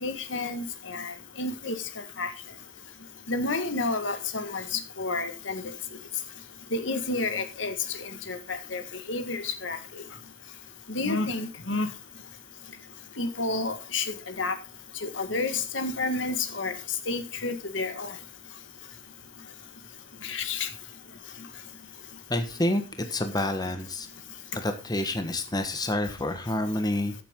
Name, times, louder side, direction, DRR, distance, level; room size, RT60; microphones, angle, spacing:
voice 1, 0.0-1.8 2.2-2.3 3.3-5.7 6.7-7.8 8.3-8.8 9.1-9.8 10.9-11.9 13.2-14.6 15.0-16.7 17.1-18.1 20.2-20.7, left 3 dB, 70° left, 8 dB, 1.7 m, -30 dB
voice 2, 22.3-24.1 24.5-27.1, left 1 dB, 20° left, 7 dB, 1.3 m, -28 dB
14.5 x 7.7 x 3.8 m, 0.30 s
head